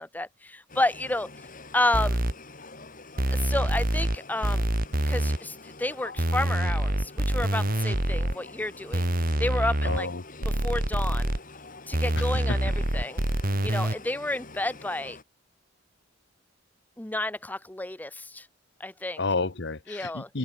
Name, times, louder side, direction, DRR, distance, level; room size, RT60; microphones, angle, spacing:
voice 1, 0.0-1.5 1.7-2.2 3.3-4.6 5.1-9.1 9.4-10.1 10.5-11.3 11.9-13.2 13.6-15.2 17.0-18.5 18.8-19.2 19.9-20.3, left 2 dB, 10° left, 0.7 m, -31 dB
sound 1, 0.7-15.2, left 3 dB, 45° left, 4.7 m, -46 dB
sound 2, 1.9-2.3 3.2-4.2 4.4-5.4 6.2-8.3 8.9-10.0 10.4-11.4 11.9-13.9, right 1 dB, 45° right, 2.6 m, -26 dB
voice 2, 9.8-10.7 12.2-12.6 19.2-20.4, left 3 dB, 60° left, 1.2 m, -31 dB
head